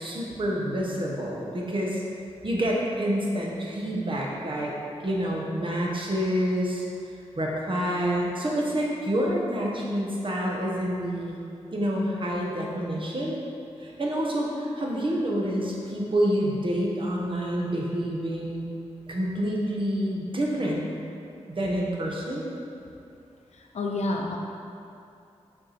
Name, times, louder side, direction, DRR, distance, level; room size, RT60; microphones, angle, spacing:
voice 1, 0.0-2.0 2.4-4.7 5.0-6.8 7.4-11.4 11.7-13.4 13.8-18.7 19.1-20.8 21.5-22.4, equal, 50° right, -3 dB, 1.3 m, -28 dB
voice 2, 23.5-24.4, left 2 dB, 75° left, 0 dB, 0.6 m, -29 dB
6.2 x 4.7 x 4.2 m, 2.6 s
cardioid pair, 55°, 11 cm